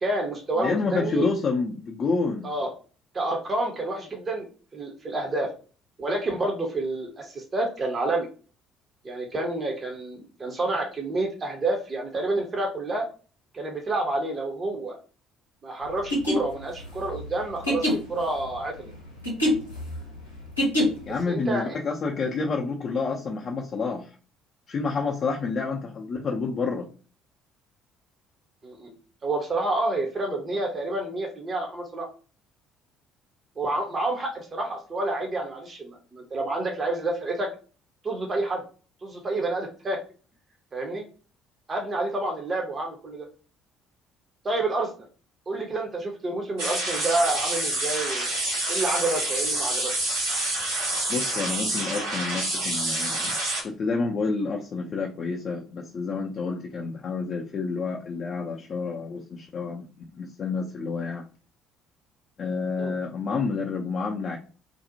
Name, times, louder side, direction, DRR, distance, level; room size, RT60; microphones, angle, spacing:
voice 1, 0.0-1.3 2.4-2.7 3.1-4.5 4.7-5.5 6.0-8.3 9.0-13.0 13.5-15.0 15.6-18.9 21.3-21.8 28.6-28.9 29.2-32.1 33.6-37.5 38.0-38.6 39.0-40.0 40.7-41.1 41.7-43.2 44.4-44.9 45.5-48.3 48.7-50.1 62.8-63.0, right 2 dB, 30° right, 1 dB, 0.5 m, -29 dB
voice 2, 0.6-2.5 21.0-24.1 24.7-26.9 51.1-53.3 53.6-59.9 60.2-61.2 62.4-64.4, left 4 dB, 40° left, 0 dB, 0.4 m, -29 dB
sound 1, 16.0-21.2, left 1 dB, 85° left, 0.6 m, -27 dB
sound 2, 46.6-53.6, right 1 dB, 70° right, 1.4 m, -27 dB
2.5 x 2.0 x 2.6 m, 0.38 s
figure-of-eight pair, 50°, 0 cm